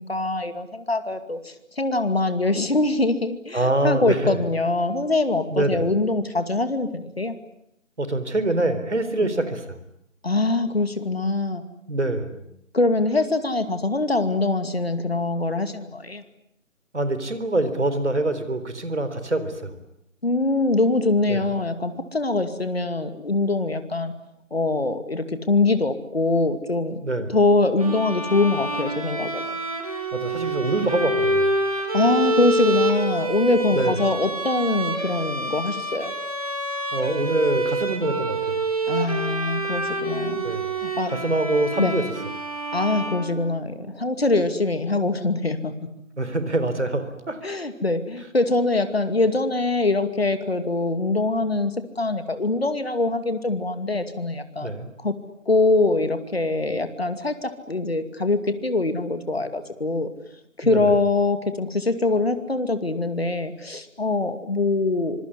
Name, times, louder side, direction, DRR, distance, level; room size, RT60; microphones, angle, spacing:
voice 1, 0.0-7.3 10.2-11.6 12.7-16.2 20.2-24.1 24.5-27.0 27.3-29.6 31.9-36.1 38.9-40.4 40.8-41.1 41.8-41.9 42.7-45.7 47.4-55.1 55.5-60.1 60.6-65.2, left 2 dB, 50° left, 10 dB, 2.5 m, -23 dB
voice 2, 3.5-4.4 5.5-5.9 8.0-9.8 11.9-12.4 16.9-19.8 21.3-21.4 27.0-27.3 30.1-31.5 33.7-34.0 36.9-38.6 40.4-40.7 41.1-42.0 46.2-47.4 54.6-54.9 60.6-60.9, right 2 dB, 60° right, 11 dB, 4.1 m, -25 dB
Bowed string instrument, 27.8-43.9, right 1 dB, 25° right, 2.9 m, -27 dB
26.0 x 22.5 x 9.8 m, 0.76 s
figure-of-eight pair, 180°, 40 cm